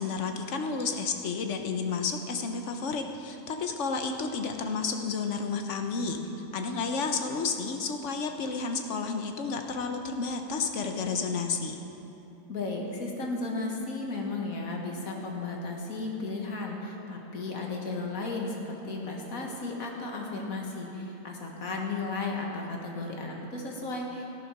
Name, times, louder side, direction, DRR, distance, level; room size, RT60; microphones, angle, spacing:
voice 1, 0.0-6.2 6.5-11.8, left 4 dB, 60° left, 5 dB, 1.2 m, -31 dB
voice 2, 12.5-24.3, left 3 dB, 80° left, 0 dB, 2.0 m, -34 dB
14.0 x 10.0 x 6.0 m, 3.0 s
omnidirectional pair, 1.5 m